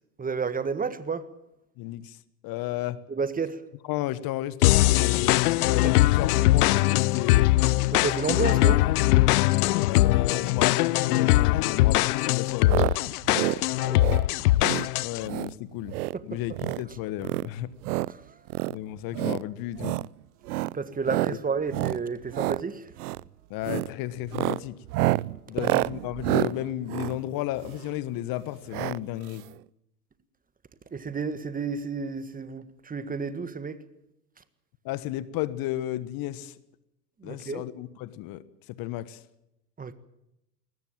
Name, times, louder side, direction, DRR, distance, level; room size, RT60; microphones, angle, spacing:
voice 1, 0.2-1.3 3.1-3.6 5.8-5.9 7.9-8.8 13.8-14.2 16.1-16.4 18.1-18.4 20.7-22.9 30.9-33.8 37.2-37.6 39.8-39.9, right 5 dB, 15° right, 1.6 m, -31 dB
voice 2, 1.8-2.2 2.4-3.0 3.9-7.5 9.8-12.7 15.0-16.0 16.2-17.7 18.7-20.0 23.5-24.8 25.5-29.4 34.8-36.5 37.2-38.4 38.7-39.2, left 14 dB, 45° left, 1.4 m, -33 dB
sound 1, 4.6-15.3, left 17 dB, 65° left, 0.7 m, -21 dB
sound 2, 12.7-13.0 13.2-13.6 14.0-14.3 14.6-14.9 15.2-15.5 15.8-16.2 16.5-16.8 17.2-18.1 18.5-18.7 19.1-19.4 19.8-20.1 20.5-20.7 21.1-21.4 21.7-22.0 22.3-22.6 23.0-23.2 23.6-23.9 24.2-27.9 28.7-29.0 29.3-29.4 29.5-29.6, right 18 dB, 65° right, 0.7 m, -28 dB
21.5 x 19.0 x 7.5 m
hypercardioid pair, 90°, 48 cm